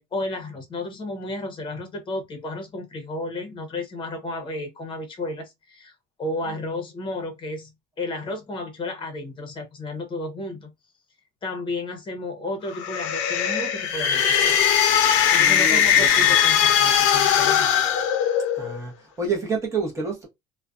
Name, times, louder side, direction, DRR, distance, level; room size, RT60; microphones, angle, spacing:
voice 1, 0.0-7.7 8.0-10.7 11.4-14.7 15.3-17.7, left 2 dB, 25° left, 0.9 m, -33 dB
Creepy Ghost Scream, 12.7-18.8, left 9 dB, 70° left, 0.6 m, -20 dB
voice 2, 15.4-16.4 18.6-20.3, right 4 dB, 15° right, 0.9 m, -29 dB
2.4 x 2.2 x 2.4 m
cardioid pair, 150°, 20 cm